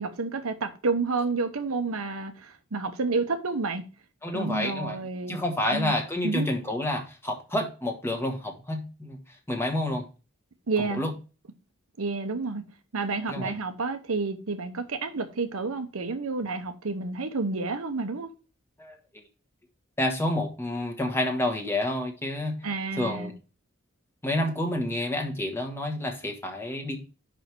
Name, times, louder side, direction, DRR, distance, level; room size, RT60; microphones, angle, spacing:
voice 1, 0.0-3.8 4.3-5.4 5.7-5.9 6.2-6.5 10.7-11.1 12.0-12.6 12.9-18.3 22.6-23.3, right 3 dB, 80° right, 0.9 m, -30 dB
voice 2, 4.2-5.0 5.3-9.2 9.5-10.0 10.8-11.1 13.3-13.5 18.8-19.0 20.0-22.6 23.0-23.3 24.2-27.0, left 1 dB, 10° left, 1.2 m, -29 dB
5.5 x 5.1 x 4.6 m
head